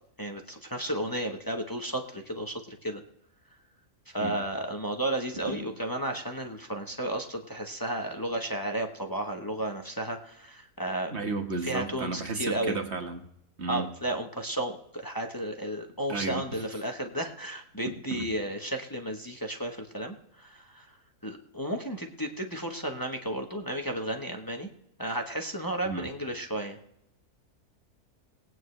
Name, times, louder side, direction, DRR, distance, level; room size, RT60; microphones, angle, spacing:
voice 1, 0.2-3.0 4.1-11.1 11.6-12.8 13.7-21.0 21.2-24.7 25.0-26.8, right 1 dB, 15° left, 2 dB, 0.8 m, -33 dB
voice 2, 11.1-13.2 13.6-13.9 16.1-16.4 17.9-18.3 25.8-26.1, right 3 dB, 45° right, 5 dB, 1.6 m, -33 dB
20.0 x 9.1 x 3.2 m, 0.76 s
omnidirectional pair, 1.6 m